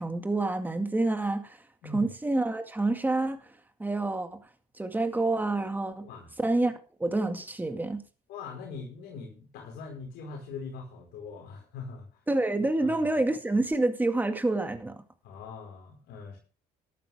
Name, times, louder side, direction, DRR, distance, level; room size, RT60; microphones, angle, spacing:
voice 1, 0.0-1.6 1.9-3.4 3.8-4.4 4.8-6.1 6.4-6.7 7.0-8.0 12.3-15.0, right 2 dB, 10° right, 2.0 m, -27 dB
voice 2, 1.8-2.1 6.0-6.3 8.3-12.3 12.8-13.1 15.2-16.4, left 4 dB, 85° left, 4.8 m, -42 dB
13.5 x 12.0 x 3.6 m
cardioid pair, 110°, 17 cm